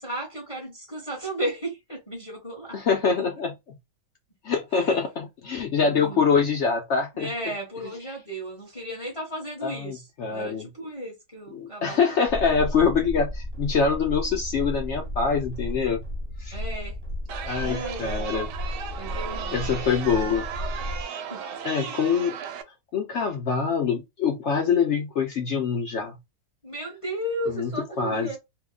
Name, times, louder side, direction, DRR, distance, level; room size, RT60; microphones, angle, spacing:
voice 1, 0.0-2.8 5.8-6.2 7.2-10.0 10.3-12.2 16.5-16.9 17.6-18.3 19.0-19.9 21.3-21.4 21.8-22.0 26.6-28.4, right 1 dB, 25° left, 0.8 m, -34 dB
voice 2, 2.7-3.5 4.4-8.2 9.6-10.7 11.5-16.0 16.4-16.6 17.5-18.5 19.5-20.5 21.6-22.4 22.9-26.2 27.5-27.7 28.0-28.4, left 5 dB, 75° left, 0.6 m, -25 dB
sound 1, 12.3-21.0, left 1 dB, 30° right, 0.8 m, -33 dB
Chatter, 17.3-22.6, right 8 dB, 80° right, 1.2 m, -35 dB
2.8 x 2.2 x 3.7 m
omnidirectional pair, 1.9 m